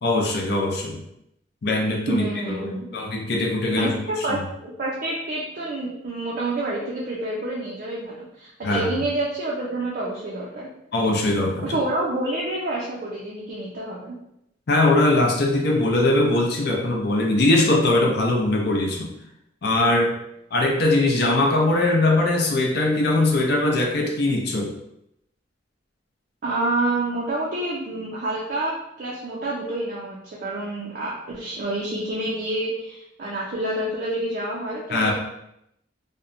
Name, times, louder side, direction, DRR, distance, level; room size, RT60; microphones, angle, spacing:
voice 1, 0.0-1.0 1.6-3.9 4.3-4.4 8.6-8.9 10.9-11.8 14.7-19.1 19.6-20.2 20.5-24.7 34.9-35.1, left 2 dB, 60° left, 1 dB, 0.5 m, -21 dB
voice 2, 2.1-2.9 3.7-10.7 11.6-14.2 26.4-35.1, right 2 dB, 50° right, -5 dB, 0.4 m, -28 dB
2.7 x 2.1 x 2.5 m, 0.80 s
head